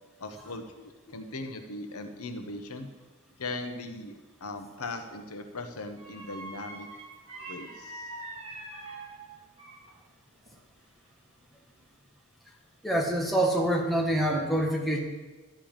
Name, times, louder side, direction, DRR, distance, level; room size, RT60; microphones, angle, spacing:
voice 1, 0.2-2.9 3.4-6.9 7.5-8.1, left 2 dB, 80° left, 6 dB, 1.1 m, -39 dB
sound 1, 4.8-5.1 6.0-10.0 10.3-11.3 11.7-11.9, right 2 dB, 30° right, 2.9 m, -44 dB
voice 2, 12.8-15.0, right 1 dB, ahead, -1 dB, 1.5 m, -26 dB
12.0 x 5.5 x 8.9 m, 1.2 s
head